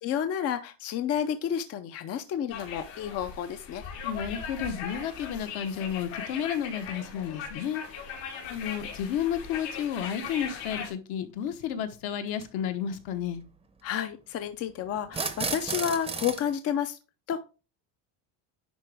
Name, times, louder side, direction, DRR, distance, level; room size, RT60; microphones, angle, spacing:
voice 1, 0.0-3.8 13.8-17.0 17.3-17.4, left 9 dB, 35° left, 0.5 m, -30 dB
sound 1, 2.5-10.9, left 6 dB, 80° left, 2.8 m, -39 dB
voice 2, 4.0-7.8 8.4-13.4, left 9 dB, 65° left, 1.2 m, -32 dB
sound 2, 10.8-10.9 12.3-12.4 15.1-16.4, right 4 dB, 15° right, 0.7 m, -32 dB
10.5 x 3.8 x 3.4 m
cardioid pair, 145°, 42 cm